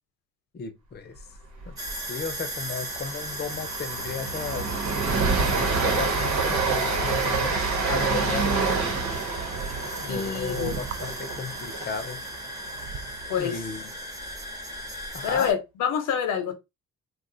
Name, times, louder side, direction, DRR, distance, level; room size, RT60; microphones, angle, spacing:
voice 1, 0.5-1.2 1.7-4.9 5.4-7.5 7.9-8.6 10.0-12.2 13.4-13.9 15.1-15.5, left 5 dB, 35° left, 0.7 m, -34 dB
Train, 1.6-1.9 2.2-2.3 2.7-12.9, right 4 dB, 75° right, 1.2 m, -27 dB
sound 1, 1.8-15.5, equal, 10° right, 0.9 m, -37 dB
sound 2, 8.9-13.4 14.2-14.3, right 7 dB, 55° right, 0.4 m, -41 dB
voice 2, 10.1-10.8 13.3-13.6 15.3-16.5, left 8 dB, 85° left, 0.8 m, -27 dB
2.5 x 2.4 x 3.8 m
cardioid pair, 90°, 30 cm